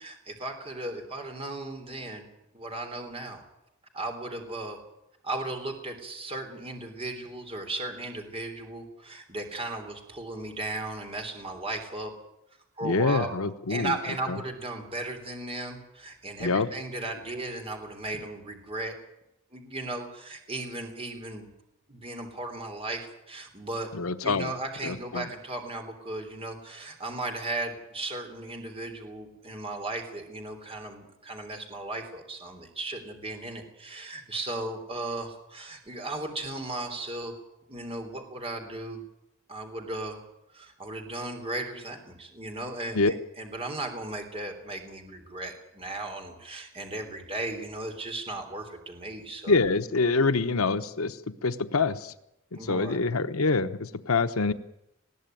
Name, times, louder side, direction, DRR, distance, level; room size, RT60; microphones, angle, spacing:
voice 1, 0.0-2.2 2.5-3.4 3.9-4.8 5.2-12.1 12.8-13.3 13.7-18.9 19.5-21.5 21.9-23.9 24.2-37.3 37.7-39.0 39.5-40.2 40.5-49.6 52.6-53.0, right 2 dB, 25° right, 4 dB, 3.3 m, -36 dB
voice 2, 12.8-13.9 14.3-14.4 16.4-16.7 23.9-24.5 24.8-25.3 42.9-43.1 49.5-52.1 52.5-54.5, left 3 dB, 80° left, 11 dB, 0.9 m, -26 dB
20.5 x 16.0 x 9.2 m, 0.84 s
head